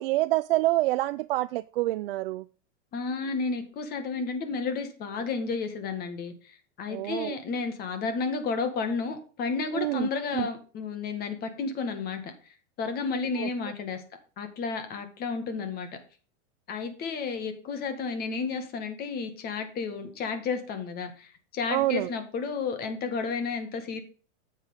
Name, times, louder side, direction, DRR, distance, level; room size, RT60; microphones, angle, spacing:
voice 1, 0.0-2.4 6.9-7.4 9.7-10.5 13.4-13.5 21.7-22.1, right 17 dB, 50° right, 0.5 m, -27 dB
voice 2, 2.9-12.3 12.8-14.0 14.4-15.9 16.7-24.0, left 4 dB, 25° left, 1.8 m, -32 dB
9.3 x 7.4 x 3.7 m
supercardioid pair, 150°, 36 cm